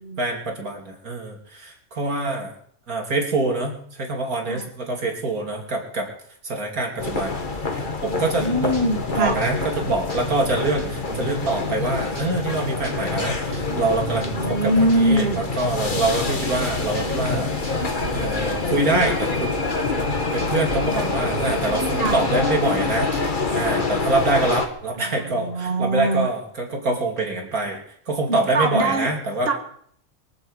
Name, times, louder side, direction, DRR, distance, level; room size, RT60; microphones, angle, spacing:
voice 1, 0.2-2.5 2.9-6.1 6.4-8.7 9.1-19.5 20.3-29.5, right 2 dB, 85° right, 2 dB, 3.4 m, -25 dB
sound 1, 7.0-24.7, left 3 dB, 35° left, 1.8 m, -26 dB
voice 2, 8.0-9.4 14.1-15.4 20.9-21.1 21.9-22.2 25.0-26.3 28.3-29.1 29.4-29.5, right 1 dB, 45° right, 4 dB, 2.2 m, -23 dB
sound 2, 8.4-19.4 19.7-20.8 21.1-24.8, right 1 dB, 25° right, 5.5 m, -38 dB
23.0 x 7.8 x 8.2 m, 0.63 s
omnidirectional pair, 1.5 m